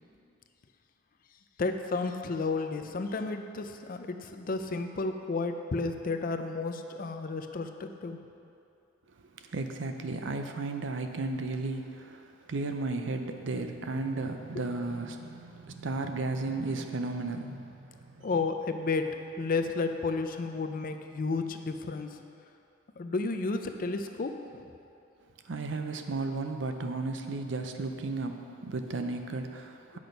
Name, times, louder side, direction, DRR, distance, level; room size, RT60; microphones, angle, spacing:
voice 1, 1.6-8.2 14.6-14.7 18.2-22.2 23.0-24.7, left 3 dB, 45° left, 7 dB, 0.4 m, -32 dB
voice 2, 9.4-18.3 25.5-30.0, right 3 dB, 65° right, 6 dB, 0.6 m, -34 dB
8.7 x 6.0 x 5.2 m, 2.6 s
head